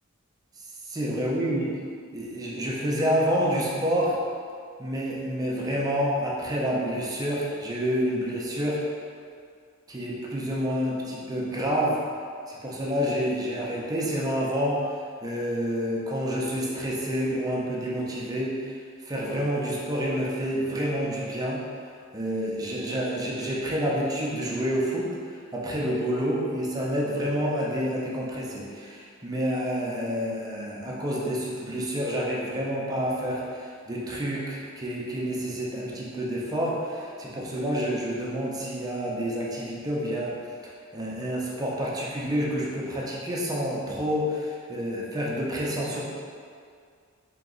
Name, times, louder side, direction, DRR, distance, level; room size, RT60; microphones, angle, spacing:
voice 1, 0.9-1.7 2.1-4.2 4.8-8.8 9.9-12.0 12.5-14.8 15.2-18.7 19.0-21.6 22.1-25.1 25.5-46.0, equal, 20° right, -4 dB, 0.5 m, -28 dB
3.0 x 2.9 x 3.7 m, 2.2 s
head